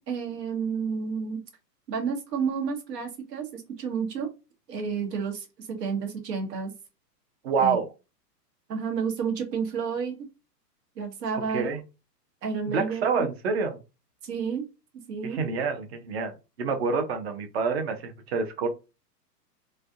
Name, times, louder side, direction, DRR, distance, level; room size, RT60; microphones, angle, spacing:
voice 1, 0.1-1.4 1.9-4.3 4.7-6.7 7.6-7.7 8.7-10.2 11.0-11.6 12.4-13.3 14.2-14.7 15.1-15.4, right 6 dB, 75° right, 2 dB, 1.2 m, -30 dB
voice 2, 7.4-7.9 11.5-11.8 12.7-13.8 15.2-18.7, right 5 dB, 40° right, 7 dB, 0.6 m, -27 dB
3.2 x 2.7 x 2.4 m, 0.28 s
hypercardioid pair, 150°, 49 cm